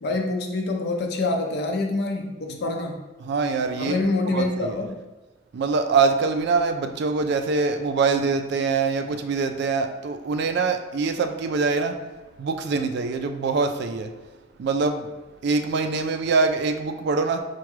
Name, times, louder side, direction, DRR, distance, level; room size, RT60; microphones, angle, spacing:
voice 1, 0.0-3.0 3.8-5.0, left 2 dB, 55° left, 2 dB, 0.5 m, -26 dB
voice 2, 3.2-4.0 4.3-4.8 5.5-12.0 12.4-14.1 14.6-15.1 15.4-17.4, right 4 dB, 55° right, 7 dB, 0.3 m, -24 dB
4.7 x 2.2 x 3.0 m, 1.2 s
head